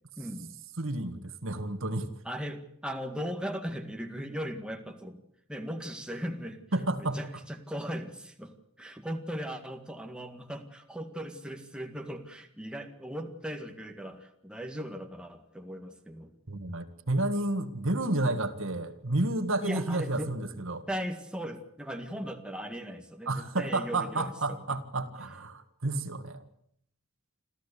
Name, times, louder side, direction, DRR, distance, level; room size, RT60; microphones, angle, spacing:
voice 1, 0.2-0.5 2.2-5.2 5.5-6.6 7.0-16.3 19.6-20.3 20.9-24.6, equal, 5° right, 4 dB, 1.9 m, -38 dB
voice 2, 0.8-2.1 6.7-7.2 16.5-20.9 23.3-26.4, right 2 dB, 65° right, 9 dB, 1.8 m, -31 dB
27.0 x 14.0 x 8.4 m, 0.70 s
head